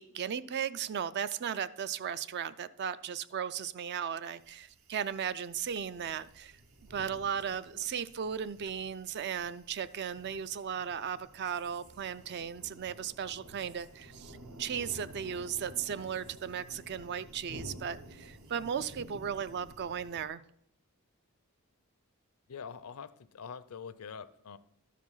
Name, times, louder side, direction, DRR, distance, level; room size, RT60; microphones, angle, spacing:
voice 1, 0.0-6.5 6.9-20.4, right 8 dB, 50° right, 0.4 m, -36 dB
sound 1, 4.4-20.3, equal, 70° right, 0.9 m, -52 dB
voice 2, 22.5-24.6, left 6 dB, 75° left, 0.5 m, -44 dB
12.5 x 5.0 x 5.5 m
head